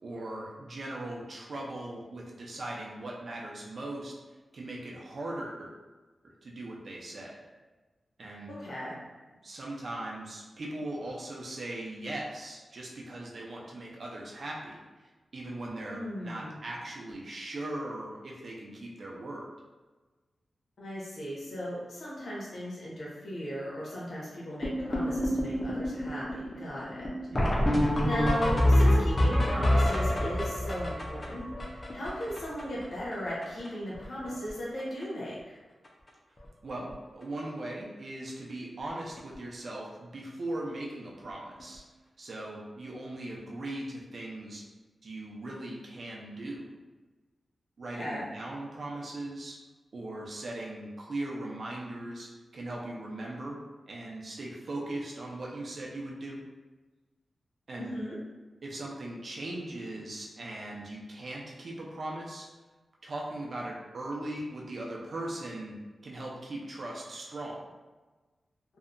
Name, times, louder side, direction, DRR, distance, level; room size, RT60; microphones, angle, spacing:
voice 1, 0.0-4.2 4.5-5.7 6.2-7.4 8.2-8.5 9.4-14.9 15.3-19.5 27.3-27.6 36.6-41.8 42.2-44.6 45.0-46.7 47.8-49.6 49.9-53.6 53.9-56.4 57.7-57.9 58.6-62.5 63.0-65.8 66.0-67.6, right 1 dB, 55° right, -3 dB, 0.4 m, -39 dB
voice 2, 8.6-9.0 15.9-16.6 20.8-27.1 28.0-35.6 47.9-48.2 57.8-58.2, equal, 65° left, -7 dB, 0.9 m, -37 dB
sound 1, 24.6-32.8 33.1-33.2 33.4-33.7 33.9-34.5 34.8-35.0 35.8-35.9 36.4-36.5 36.7-36.9 39.2-39.3 41.6-41.7, left 1 dB, 25° left, 0.4 m, -27 dB
2.7 x 2.1 x 2.4 m, 1.3 s
wide cardioid pair, 145°, 0 cm